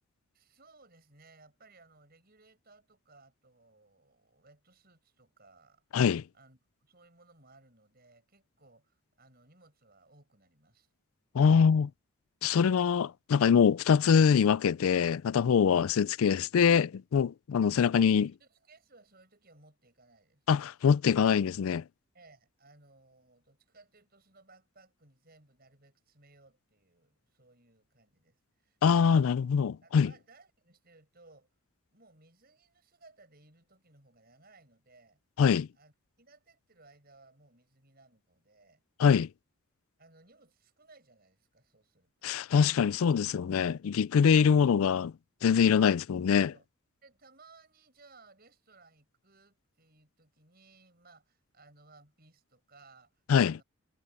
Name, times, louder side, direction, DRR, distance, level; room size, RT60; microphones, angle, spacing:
voice 1, 0.3-5.8 6.3-10.9 18.0-20.4 22.1-29.4 29.8-31.5 31.9-35.2 35.8-38.8 40.0-42.4 44.2-44.7 45.5-46.0 46.5-46.7 47.0-53.6, right 3 dB, 45° right, 7.4 m, -61 dB
voice 2, 5.9-6.2 11.3-11.9 12.4-18.3 20.5-21.8 28.8-30.1 35.4-35.7 39.0-39.3 42.2-45.1 45.4-46.5 53.3-53.6, left 6 dB, 75° left, 0.4 m, -24 dB
head